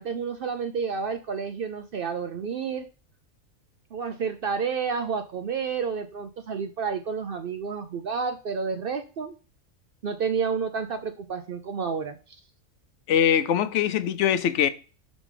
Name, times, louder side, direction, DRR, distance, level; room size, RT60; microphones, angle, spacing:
voice 1, 0.0-2.9 3.9-9.3 10.0-12.2, right 6 dB, 60° right, 0.6 m, -30 dB
voice 2, 13.1-14.7, left 9 dB, 70° left, 0.9 m, -22 dB
6.2 x 3.5 x 4.8 m
omnidirectional pair, 1.4 m